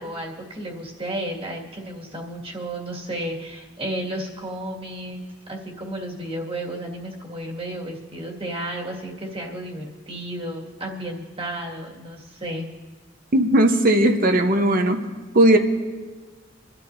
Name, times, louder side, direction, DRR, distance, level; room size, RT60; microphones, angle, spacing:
voice 1, 0.0-5.2 5.5-12.7, right 1 dB, 30° right, -2 dB, 2.1 m, -32 dB
voice 2, 13.3-15.1 15.3-15.6, right 1 dB, 50° right, 5 dB, 1.0 m, -17 dB
26.5 x 12.5 x 2.7 m, 1.3 s
head